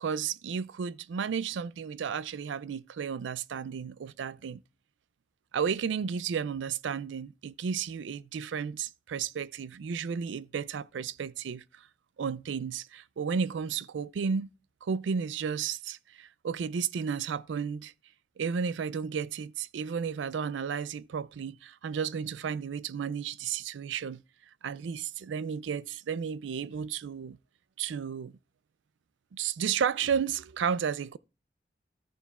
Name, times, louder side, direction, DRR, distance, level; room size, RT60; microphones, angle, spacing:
voice 1, 0.0-4.6 5.5-11.6 12.2-14.5 14.8-17.9 18.4-24.2 24.6-27.4 27.8-28.4 29.3-31.2, right 6 dB, 90° right, 0.4 m, -33 dB
13.5 x 7.0 x 2.3 m
head